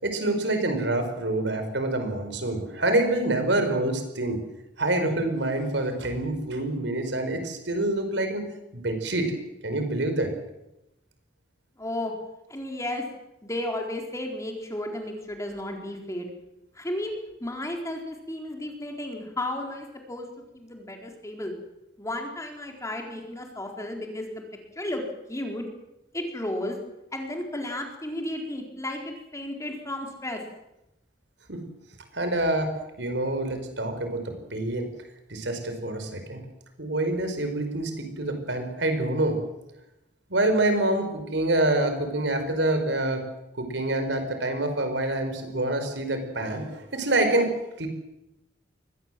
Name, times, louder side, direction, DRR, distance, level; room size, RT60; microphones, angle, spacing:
voice 1, 0.0-4.4 4.8-8.4 8.7-9.3 9.6-10.3 31.5-31.6 32.1-34.9 35.3-36.4 36.8-39.4 40.3-43.2 43.5-47.5 47.8-47.9, right 2 dB, 85° right, 7 dB, 4.8 m, -26 dB
voice 2, 11.8-12.1 12.5-13.0 13.4-16.3 16.8-17.1 17.4-20.3 20.5-21.5 22.0-24.4 24.8-25.0 25.3-25.7 26.1-26.8 27.1-30.4, left 1 dB, 20° left, 2 dB, 4.2 m, -33 dB
23.0 x 19.0 x 7.7 m, 0.90 s
head